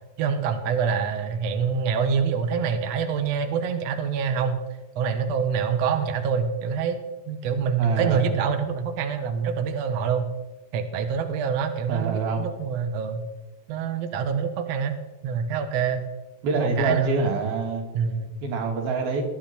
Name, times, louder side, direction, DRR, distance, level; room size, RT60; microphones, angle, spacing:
voice 1, 0.2-4.6 5.0-7.0 7.3-10.3 10.7-13.2 13.7-15.0 15.2-16.0 16.5-17.3 17.9-18.3, right 6 dB, 60° right, 6 dB, 2.0 m, -26 dB
voice 2, 7.8-8.3 11.9-12.5 16.4-17.8 18.4-19.2, right 4 dB, 85° right, 1 dB, 4.4 m, -25 dB
19.5 x 12.0 x 4.4 m, 1.1 s
omnidirectional pair, 4.2 m